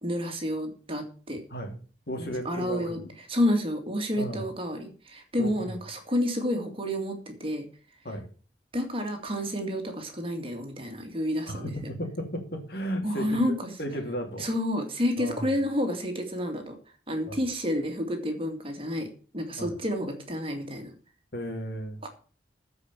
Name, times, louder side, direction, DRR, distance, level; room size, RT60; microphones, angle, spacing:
voice 1, 0.0-1.4 2.2-3.0 3.3-7.6 8.7-11.7 13.0-13.8 14.4-16.8 17.1-19.1 19.3-20.9 22.0-22.1, equal, 30° right, 4 dB, 2.2 m, -30 dB
voice 2, 2.1-3.1 4.2-4.5 5.4-5.7 8.0-8.3 11.5-13.4 13.8-14.5 15.2-15.5 17.3-17.4 19.6-19.7 21.3-22.0, equal, 60° left, 3 dB, 2.7 m, -34 dB
14.5 x 5.3 x 7.4 m, 0.40 s
head